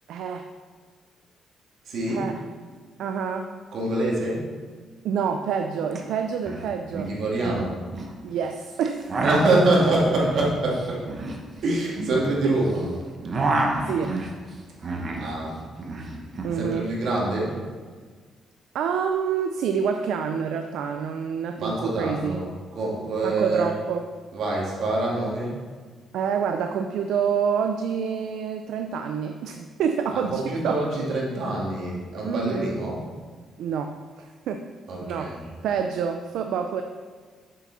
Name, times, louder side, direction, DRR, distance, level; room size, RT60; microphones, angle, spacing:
voice 1, 0.1-0.5 2.1-2.4 3.0-3.5 5.0-7.1 8.2-9.1 13.9-14.2 16.4-16.9 18.7-22.4 23.2-24.0 26.1-30.8 32.2-32.7 33.6-34.6 35.0-35.3 35.6-36.8, right 7 dB, 85° right, 6 dB, 0.4 m, -27 dB
voice 2, 1.9-2.3 3.7-4.5 7.1-7.8 9.2-11.0 11.6-12.9 15.1-15.6 16.6-17.6 21.6-23.7 24.3-25.6 30.1-33.0 34.9-35.5, right 2 dB, 65° right, -4 dB, 2.3 m, -25 dB
sound 1, 6.0-6.1 6.3-6.6 6.9-8.1 8.8-12.8 13.1-15.3 15.6-16.5, right 2 dB, 40° right, 1.1 m, -29 dB
7.5 x 6.9 x 4.2 m, 1.5 s
cardioid pair, 115°, 0 cm